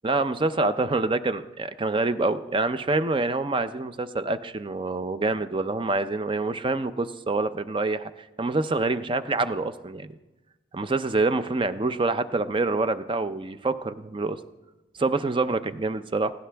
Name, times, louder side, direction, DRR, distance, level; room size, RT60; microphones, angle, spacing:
voice 1, 0.0-8.1 8.4-10.1 10.7-14.4 15.0-16.3, right 3 dB, 30° right, 12 dB, 0.6 m, -26 dB
18.5 x 16.5 x 3.5 m, 1.1 s
head